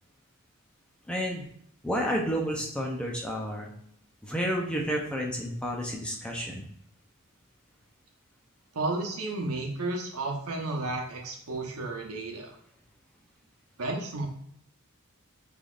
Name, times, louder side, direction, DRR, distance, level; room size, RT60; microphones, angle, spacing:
voice 1, 1.1-1.5 1.8-3.7 4.2-6.6, equal, 5° left, -1 dB, 0.6 m, -30 dB
voice 2, 8.7-12.6 13.8-14.3, right 2 dB, 90° right, 1 dB, 1.0 m, -32 dB
6.1 x 3.4 x 2.5 m, 0.66 s
head